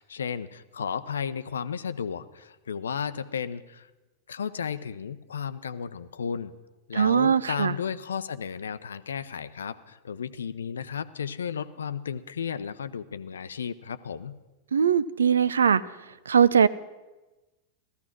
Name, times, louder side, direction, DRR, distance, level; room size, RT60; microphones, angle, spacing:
voice 1, 0.0-3.9 4.3-6.5 6.9-14.4, left 7 dB, 70° left, 14 dB, 0.6 m, -34 dB
voice 2, 6.9-7.7 14.7-15.8 16.3-16.7, right 7 dB, 70° right, 18 dB, 0.5 m, -20 dB
15.5 x 14.0 x 6.1 m, 1.1 s
figure-of-eight pair, 90°, 0 cm